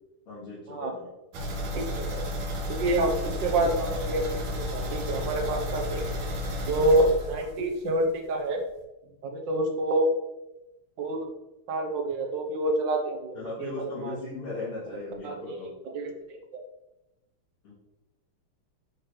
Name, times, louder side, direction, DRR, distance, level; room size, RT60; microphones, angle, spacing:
voice 1, 0.3-1.1 1.6-2.0 13.3-15.7 17.6-17.7, left 3 dB, 75° left, -12 dB, 3.2 m, -38 dB
sound 1, 1.3-8.0 8.3-8.4 8.8-8.9, left 1 dB, 90° right, 2.1 m, -32 dB
voice 2, 1.7-2.2 2.7-4.2 4.6-6.1 6.7-8.6 9.2-10.1 11.0-11.2 11.7-14.2 15.2-15.6 15.9-16.6, right 1 dB, 60° right, 3 dB, 1.6 m, -27 dB
11.5 x 4.0 x 3.3 m, 0.97 s
omnidirectional pair, 2.4 m